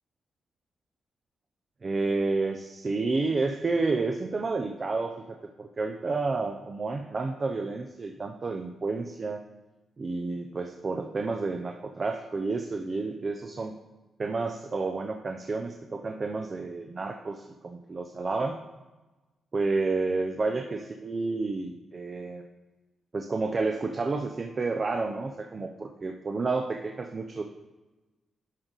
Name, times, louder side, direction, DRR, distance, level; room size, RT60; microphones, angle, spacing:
voice 1, 1.8-9.4 10.0-13.7 14.2-18.6 19.5-22.4 23.1-27.4, right 3 dB, 30° right, 4 dB, 0.4 m, -30 dB
10.5 x 3.9 x 3.9 m, 1.2 s
wide cardioid pair, 150°, 0 cm